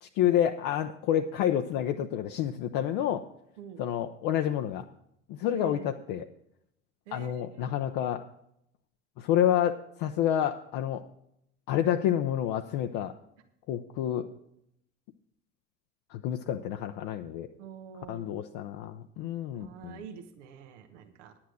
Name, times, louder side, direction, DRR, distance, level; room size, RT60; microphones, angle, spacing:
voice 1, 0.0-3.2 3.8-4.8 5.3-6.2 7.1-8.2 9.2-11.0 11.7-13.1 13.7-14.3 16.1-17.5 18.1-20.0, left 10 dB, 55° left, 5 dB, 0.7 m, -29 dB
voice 2, 5.5-5.9 7.1-7.7 17.6-18.5 19.5-21.4, right 8 dB, 75° right, 6 dB, 1.2 m, -46 dB
10.0 x 8.7 x 6.3 m, 0.75 s
hypercardioid pair, 65°, 37 cm